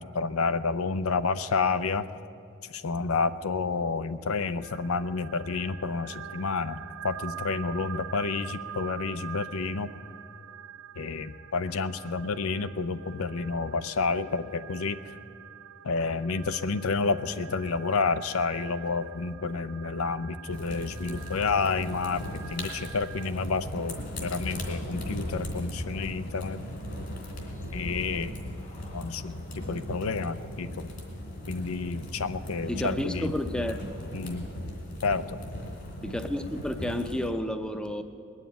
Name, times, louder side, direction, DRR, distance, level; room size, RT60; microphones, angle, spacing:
voice 1, 0.0-2.1 2.6-9.9 11.0-15.0 15.8-26.6 27.7-28.3 28.9-30.9 31.5-33.3 34.1-34.5 35.0-35.4, left 4 dB, 85° left, 13 dB, 0.6 m, -30 dB
sound 1, 4.6-23.3, right 9 dB, 85° right, 0.4 m, -45 dB
sound 2, 20.5-37.3, left 1 dB, 50° left, 3.1 m, -38 dB
sound 3, 23.1-31.2, left 1 dB, 30° left, 1.2 m, -55 dB
voice 2, 32.7-34.1 36.0-38.0, left 1 dB, 5° left, 8 dB, 0.6 m, -31 dB
20.0 x 7.4 x 9.1 m, 2.5 s
head